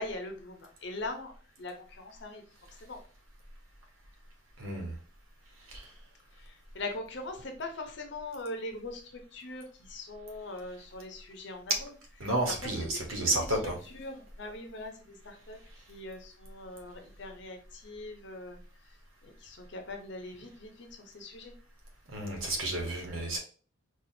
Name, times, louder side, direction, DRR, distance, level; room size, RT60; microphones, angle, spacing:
voice 1, 0.0-2.4 2.8-3.0 6.4-11.9 12.2-13.6 13.8-15.6 15.9-18.9 19.2-21.5, left 2 dB, 55° left, 5 dB, 0.6 m, -42 dB
voice 2, 4.6-5.0 5.7-5.9 12.2-13.8 22.1-23.4, right 1 dB, 80° right, 1 dB, 1.1 m, -31 dB
4.2 x 2.4 x 2.6 m, 0.40 s
head